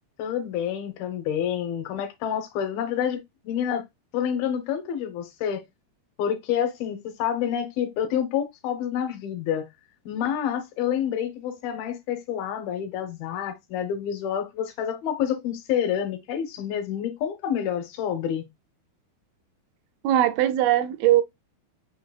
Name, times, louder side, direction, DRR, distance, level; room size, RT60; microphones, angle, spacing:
voice 1, 0.2-3.8 4.1-5.6 6.2-9.7 10.1-18.5, left 9 dB, 75° left, 2.6 m, -28 dB
voice 2, 20.0-21.2, right 12 dB, 80° right, 2.4 m, -20 dB
5.9 x 3.7 x 2.2 m
omnidirectional pair, 4.6 m